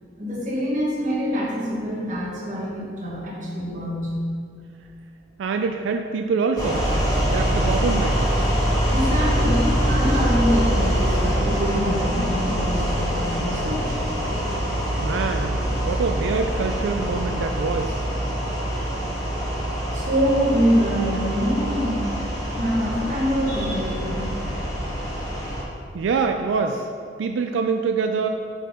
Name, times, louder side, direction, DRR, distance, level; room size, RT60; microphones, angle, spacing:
voice 1, 0.2-4.2 8.8-14.0 19.9-22.0 22.6-24.3, equal, 40° right, -5 dB, 1.5 m, -25 dB
voice 2, 5.4-6.9 7.3-8.2 15.0-18.1 25.9-26.9 27.2-28.3, right 5 dB, 90° right, 5 dB, 0.3 m, -25 dB
sound 1, 6.6-25.6, equal, 20° left, 1.4 m, -24 dB
8.0 x 4.2 x 3.6 m, 2.3 s
head